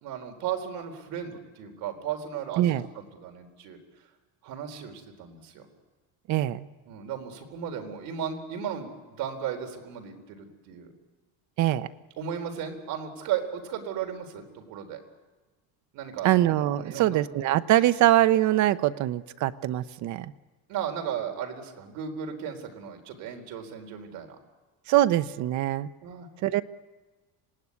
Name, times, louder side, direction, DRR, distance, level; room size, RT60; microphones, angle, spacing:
voice 1, 0.0-3.8 4.4-5.6 6.9-10.9 12.2-15.0 15.9-16.3 16.7-17.2 20.7-24.4 26.0-26.3, right 8 dB, 70° right, 4 dB, 4.1 m, -35 dB
voice 2, 6.3-6.7 11.6-11.9 16.2-20.3 24.9-25.9 26.4-26.6, right 14 dB, 55° right, 14 dB, 0.8 m, -23 dB
26.5 x 18.5 x 9.7 m, 1.3 s
cardioid pair, 175°, 36 cm